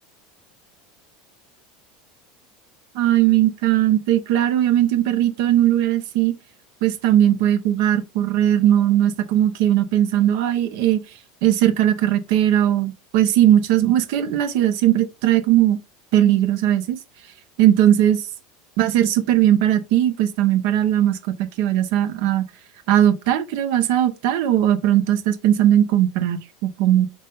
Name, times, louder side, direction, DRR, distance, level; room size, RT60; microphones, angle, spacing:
voice 1, 2.9-6.3 6.8-11.0 11.4-15.8 16.1-17.0 17.6-18.2 18.8-21.2 21.6-22.4 22.9-27.1, right 12 dB, 70° right, 0.9 m, -18 dB
4.3 x 3.6 x 3.3 m
supercardioid pair, 100°, 0 cm